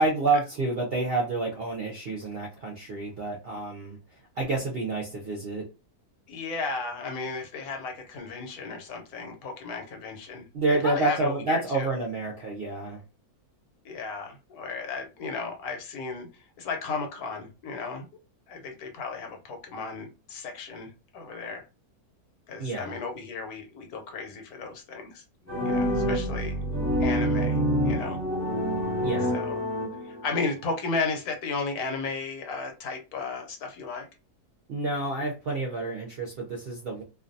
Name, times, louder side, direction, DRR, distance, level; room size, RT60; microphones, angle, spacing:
voice 1, 0.0-4.0 4.4-5.7 10.5-13.0 22.6-23.0 29.0-29.4 34.7-37.0, right 2 dB, 60° right, -1 dB, 0.6 m, -28 dB
voice 2, 6.3-11.9 13.8-18.1 18.5-21.7 22.5-25.2 25.6-26.6 27.0-28.2 29.3-29.6 30.0-34.1, left 4 dB, 80° left, 4 dB, 1.1 m, -34 dB
sound 1, 25.5-30.4, equal, 15° right, 0.8 m, -27 dB
2.5 x 2.2 x 2.5 m, 0.31 s
omnidirectional pair, 1.6 m